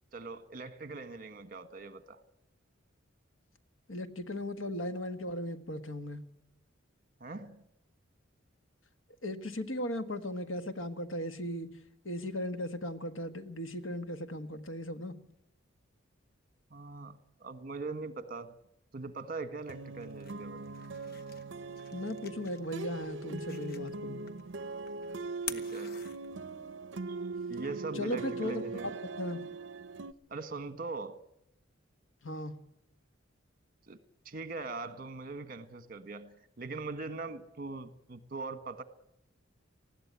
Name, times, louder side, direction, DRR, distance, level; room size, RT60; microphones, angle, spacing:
voice 1, 0.1-2.2 7.2-7.6 16.7-18.6 18.9-20.8 25.5-26.0 27.3-28.9 30.3-31.2 33.9-34.0 34.2-38.8, right 3 dB, 45° right, 1.5 m, -41 dB
voice 2, 3.9-6.3 9.2-11.7 12.0-15.2 21.9-24.3 27.9-28.9 29.2-29.4 32.2-32.6, left 1 dB, 85° left, 1.6 m, -37 dB
sound 1, 19.7-30.1, right 3 dB, 65° right, 0.7 m, -41 dB
sound 2, 19.8-26.8, left 7 dB, 50° left, 1.4 m, -49 dB
20.0 x 16.0 x 8.2 m
head